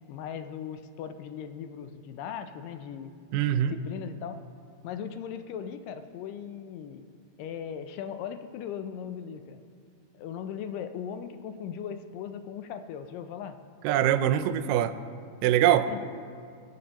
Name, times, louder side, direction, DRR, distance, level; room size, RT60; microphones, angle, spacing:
voice 1, 0.1-3.1 3.5-4.4 4.8-7.0 7.4-9.6 10.1-13.6 15.9-16.0, left 8 dB, 85° left, 9 dB, 2.3 m, -38 dB
voice 2, 3.3-3.7 13.8-15.0 15.4-15.9, right 11 dB, 85° right, 11 dB, 2.2 m, -23 dB
22.5 x 8.6 x 3.0 m, 2.3 s
omnidirectional pair, 3.8 m